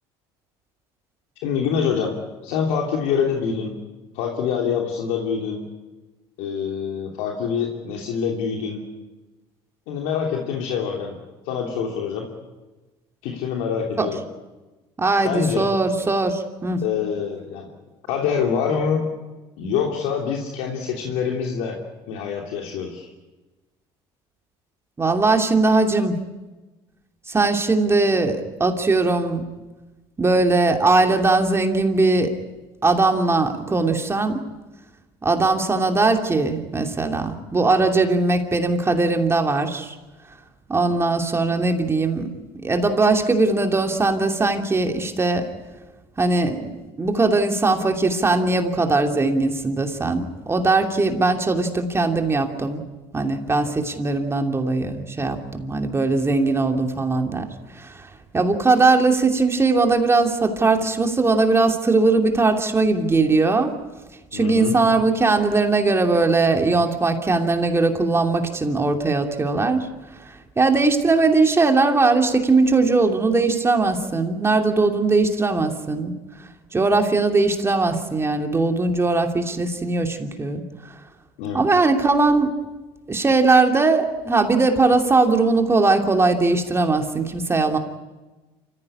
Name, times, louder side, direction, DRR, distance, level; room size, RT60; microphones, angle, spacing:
voice 1, 1.4-2.1 2.4-3.8 4.1-5.6 6.4-8.8 9.9-11.1 11.4-12.3 13.2-14.2 15.1-15.7 16.8-17.7 18.1-19.0 19.6-21.8 22.1-23.1 64.3-64.8 81.4-81.6, left 6 dB, 80° left, 1 dB, 3.0 m, -25 dB
voice 2, 15.0-16.8 25.0-26.1 27.3-29.4 30.2-32.3 32.8-34.4 35.2-39.9 40.7-42.3 42.6-45.5 46.2-46.7 47.0-52.8 53.1-57.5 57.7-58.1 58.3-63.7 64.3-69.9 70.2-76.1 76.7-80.6 81.5-82.5 83.1-87.8, right 3 dB, 20° right, 4 dB, 2.8 m, -20 dB
27.0 x 15.0 x 9.9 m, 1.2 s
supercardioid pair, 90°, 12 cm